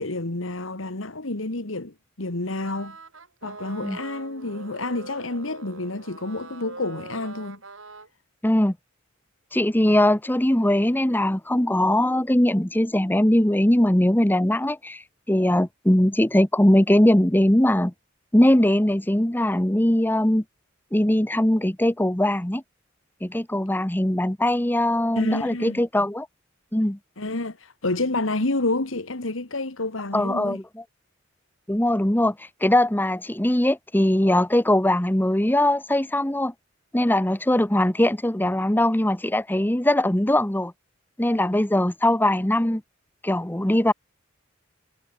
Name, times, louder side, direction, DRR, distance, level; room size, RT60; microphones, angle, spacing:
voice 1, 0.0-3.0 3.4-7.6 25.2-25.8 27.2-30.6, left 2 dB, 90° left, 2.1 m, -29 dB
sound 1, 2.6-8.1, right 3 dB, 85° right, 4.6 m, -42 dB
voice 2, 8.4-8.7 9.5-15.0 15.3-17.9 18.3-20.4 20.9-22.6 23.2-26.3 26.7-27.0 30.1-30.6 31.7-32.3 32.6-36.5 36.9-40.7 41.2-42.8 43.2-43.9, left 1 dB, 10° left, 1.1 m, -21 dB
head